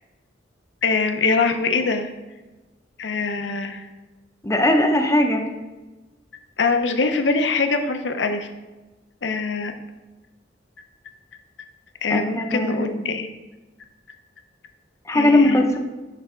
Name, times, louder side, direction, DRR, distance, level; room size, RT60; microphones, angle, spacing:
voice 1, 0.8-2.1 3.0-3.8 6.6-8.5 9.2-9.7 12.0-13.3 15.1-15.6, left 4 dB, 75° left, 7 dB, 0.6 m, -23 dB
voice 2, 4.4-5.4 12.1-13.1 15.1-15.8, left 1 dB, 15° left, 3 dB, 0.7 m, -19 dB
6.6 x 3.4 x 4.9 m, 1.1 s
head